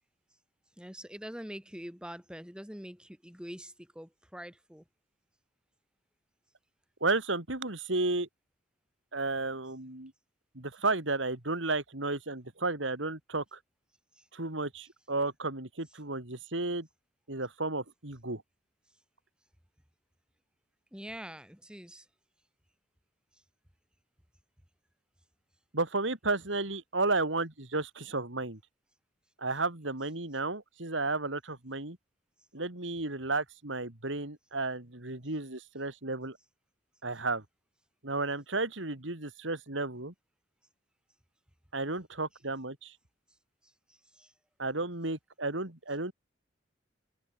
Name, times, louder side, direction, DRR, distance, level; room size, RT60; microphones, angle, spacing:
voice 1, 0.8-4.8 14.1-14.3 20.9-22.1 43.6-44.3, equal, 5° right, 6.8 m, -45 dB
voice 2, 7.0-8.3 9.1-10.1 10.5-13.6 14.3-16.9 17.3-18.4 25.7-28.6 29.4-32.0 32.5-36.4 37.0-37.4 38.0-40.1 41.7-42.9 44.6-46.1, right 3 dB, 80° right, 3.3 m, -33 dB
head